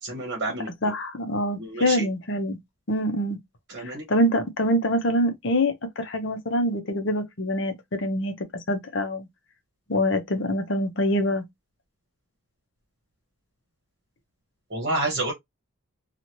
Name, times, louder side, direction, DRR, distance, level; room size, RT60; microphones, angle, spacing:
voice 1, 0.0-0.7 1.6-2.1 3.7-4.1 14.7-15.3, right 2 dB, 50° right, 1.1 m, -29 dB
voice 2, 0.8-2.6 2.9-3.4 3.8-8.3 8.7-9.3 9.9-11.4, equal, 55° left, 0.7 m, -25 dB
2.8 x 2.4 x 2.9 m
head